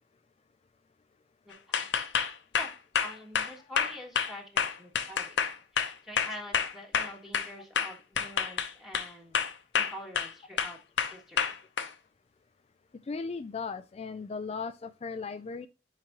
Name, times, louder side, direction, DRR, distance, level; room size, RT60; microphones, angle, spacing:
voice 1, 1.4-1.9 2.2-2.7 3.0-5.4 5.7-9.4 9.7-10.8 11.1-11.5, equal, ahead, 1.5 m, -46 dB
sound 1, 1.7-7.5 7.8-9.1 9.3-10.3 10.6-11.9, left 7 dB, 70° left, 0.8 m, -28 dB
voice 2, 13.1-15.7, left 4 dB, 35° left, 0.3 m, -37 dB
8.7 x 4.9 x 2.9 m
head